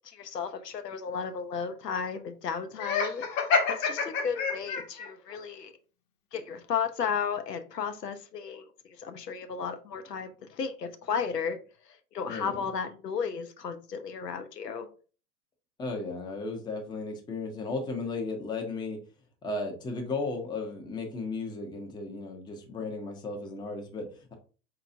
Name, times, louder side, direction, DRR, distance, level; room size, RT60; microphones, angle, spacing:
voice 1, 0.0-3.3 3.7-5.7 6.3-8.7 9.0-11.6 11.9-14.9, left 6 dB, 85° left, 0.7 m, -34 dB
Laughter, 2.8-5.1, left 5 dB, 55° left, 1.0 m, -28 dB
voice 2, 12.3-12.6 15.8-19.0 19.4-24.3, left 3 dB, 10° left, 0.6 m, -35 dB
4.6 x 2.9 x 2.5 m
figure-of-eight pair, 100°, 47 cm